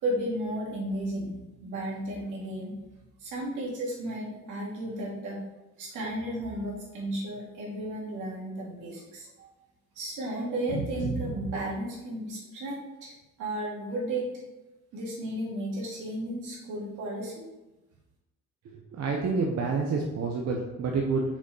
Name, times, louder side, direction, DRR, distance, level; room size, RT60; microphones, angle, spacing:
voice 1, 0.0-2.8 3.2-5.4 5.8-9.5 10.0-14.3 14.9-17.3, right 1 dB, 85° right, -4 dB, 2.1 m, -33 dB
voice 2, 18.7-21.2, right 4 dB, 60° right, 0 dB, 0.9 m, -28 dB
6.0 x 4.2 x 4.1 m, 1.0 s
cardioid pair, 90°, 30 cm